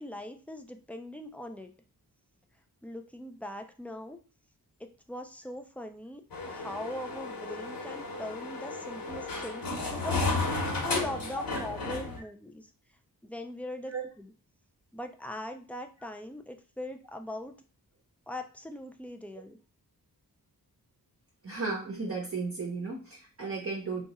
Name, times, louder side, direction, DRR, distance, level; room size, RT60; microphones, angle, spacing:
voice 1, 0.0-1.7 2.8-4.2 4.8-10.5 10.8-12.7 13.2-14.3 14.9-17.6 18.3-19.6, left 1 dB, 5° left, 5 dB, 0.4 m, -41 dB
sound 1, 6.3-12.2, left 3 dB, 65° left, 1.0 m, -33 dB
voice 2, 21.4-24.0, right 4 dB, 40° right, -1 dB, 0.8 m, -34 dB
2.8 x 2.3 x 4.1 m, 0.38 s
wide cardioid pair, 130°, 37 cm